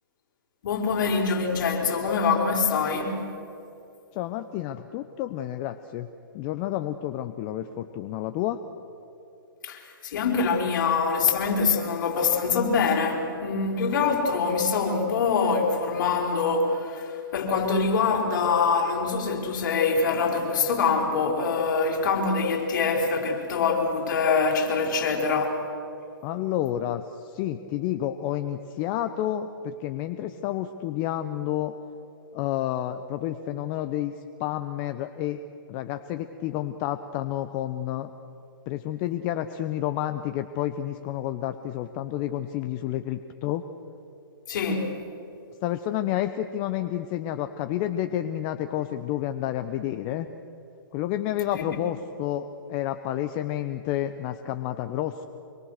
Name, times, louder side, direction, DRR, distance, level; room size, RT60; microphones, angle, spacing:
voice 1, 0.6-3.3 9.6-25.6 44.5-44.9 51.5-51.7, left 5 dB, 55° left, 4.9 m, -24 dB
voice 2, 4.1-6.1 6.3-8.6 26.2-31.7 32.3-34.1 34.4-35.4 35.7-38.1 38.7-43.6 45.6-50.3 50.9-55.2, left 12 dB, 35° left, 0.9 m, -30 dB
25.5 x 23.5 x 6.6 m
hypercardioid pair, 130°, 12 cm